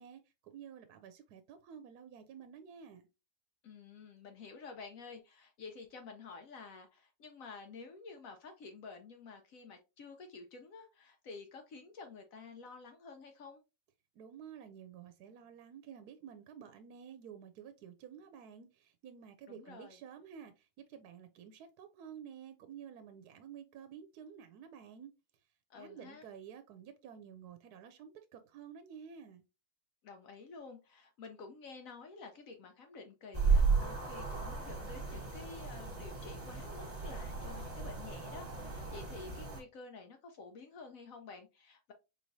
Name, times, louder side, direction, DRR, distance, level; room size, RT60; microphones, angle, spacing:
voice 1, 0.0-3.0 14.2-25.1 25.8-29.4, right 8 dB, 80° right, 1.1 m, -51 dB
voice 2, 3.6-13.6 19.5-20.0 25.7-26.3 30.0-41.9, left 4 dB, 65° left, 1.0 m, -50 dB
sound 1, 33.3-39.6, right 4 dB, 25° right, 1.3 m, -34 dB
4.5 x 3.1 x 2.6 m
omnidirectional pair, 1.7 m